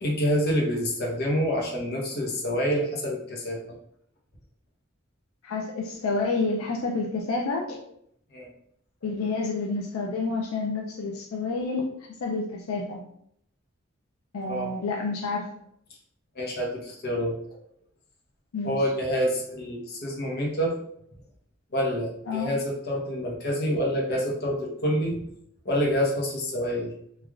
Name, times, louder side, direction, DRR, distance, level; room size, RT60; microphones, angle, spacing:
voice 1, 0.0-3.8 8.3-8.5 9.0-9.1 14.4-14.7 16.3-17.6 18.6-20.8 21.7-25.3 25.6-26.9, equal, 50° left, -2 dB, 0.8 m, -27 dB
voice 2, 5.4-7.8 9.0-11.9 12.2-13.0 14.3-15.5 18.5-18.8 22.3-22.5, left 3 dB, 85° left, 0 dB, 0.4 m, -29 dB
3.2 x 2.3 x 2.4 m, 0.69 s
head